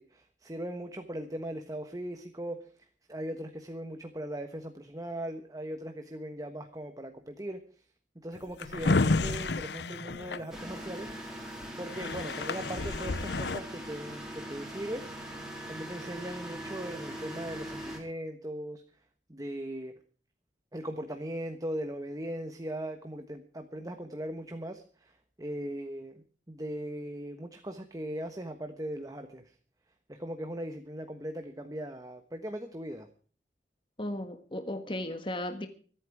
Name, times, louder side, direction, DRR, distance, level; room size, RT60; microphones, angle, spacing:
voice 1, 0.0-2.6 3.1-7.6 8.2-11.1 11.8-15.1 15.7-18.8 19.3-19.9 20.7-25.1 25.4-26.2 26.5-29.4 30.1-33.1, right 1 dB, 20° right, 6 dB, 1.3 m, -39 dB
Drawer open or close, 8.3-11.1 11.6-11.7 11.9-13.6, left 3 dB, 75° left, 0.7 m, -30 dB
sound 1, 10.5-18.0, right 1 dB, 5° right, 4.2 m, -41 dB
voice 2, 34.0-35.7, left 1 dB, 30° left, 7 dB, 1.5 m, -35 dB
25.0 x 9.2 x 4.7 m, 0.43 s
head